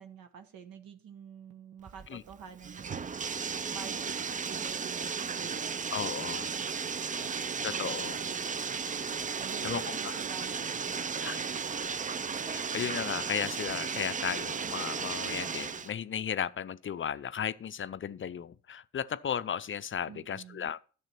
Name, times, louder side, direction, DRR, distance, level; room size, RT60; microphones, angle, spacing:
voice 1, 0.0-5.8 7.3-8.8 9.3-11.6 20.1-20.7, right 8 dB, 60° right, 1.1 m, -49 dB
Bathtub (filling or washing), 1.9-15.9, right 6 dB, 20° right, 0.5 m, -35 dB
voice 2, 5.9-6.6 7.6-8.2 9.6-10.1 11.2-11.4 12.3-20.9, left 8 dB, 30° left, 0.5 m, -35 dB
12.0 x 6.8 x 4.4 m
hypercardioid pair, 45°, 40 cm